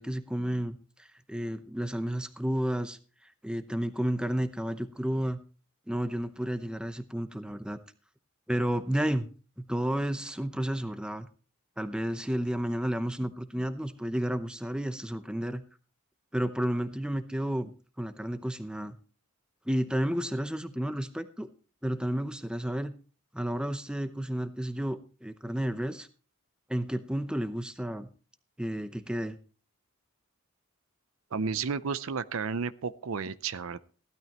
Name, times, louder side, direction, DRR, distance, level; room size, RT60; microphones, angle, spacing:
voice 1, 0.0-5.4 5.9-7.8 8.5-9.3 9.7-11.3 11.8-15.6 16.3-17.7 18.0-19.0 19.7-21.5 21.8-22.9 23.3-26.1 26.7-28.1 28.6-29.4, equal, 5° right, 10 dB, 0.7 m, -31 dB
voice 2, 31.3-33.8, right 5 dB, 70° right, 15 dB, 0.5 m, -32 dB
16.0 x 12.5 x 3.0 m, 0.37 s
head